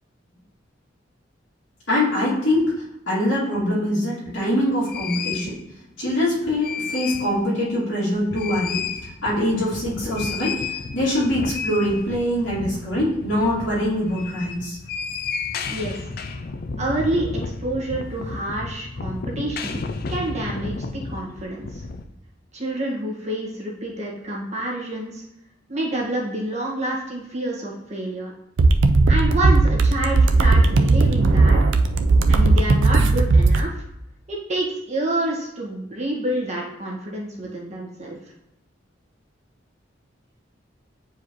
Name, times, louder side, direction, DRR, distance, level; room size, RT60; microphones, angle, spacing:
voice 1, 1.9-2.7 3.1-5.5 6.0-8.8 9.2-14.8, left 1 dB, 75° left, -9 dB, 2.5 m, -23 dB
sound 1, 4.3-4.4 4.9-5.6 6.4-7.4 7.7-7.8 8.1-22.0, left 4 dB, 50° left, 0.4 m, -32 dB
voice 2, 15.7-16.1 16.8-19.8 20.1-20.8 21.0-21.8 22.5-25.2 25.7-28.3 29.1-31.6 32.3-33.7 34.3-38.2, right 1 dB, 35° right, -4 dB, 1.6 m, -28 dB
sound 2, 28.6-33.6, right 3 dB, 80° right, 0.5 m, -16 dB
8.1 x 4.7 x 3.0 m, 0.90 s
head